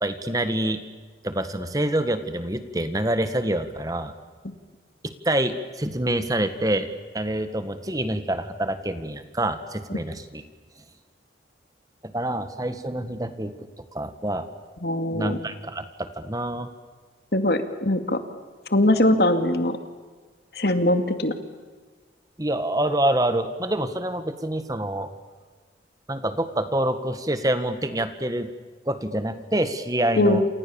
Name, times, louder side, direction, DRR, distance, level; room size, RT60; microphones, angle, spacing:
voice 1, 0.0-0.8 1.2-4.1 5.0-6.9 7.1-10.4 12.0-13.5 13.9-14.5 15.1-16.7 22.4-25.1 26.1-28.5 28.8-30.5, right 1 dB, 20° right, 10 dB, 1.6 m, -26 dB
voice 2, 14.8-15.4 17.3-18.2 18.7-19.8 20.6-21.3 30.2-30.4, left 1 dB, 60° left, 8 dB, 2.3 m, -21 dB
29.0 x 28.0 x 7.1 m, 1.4 s
head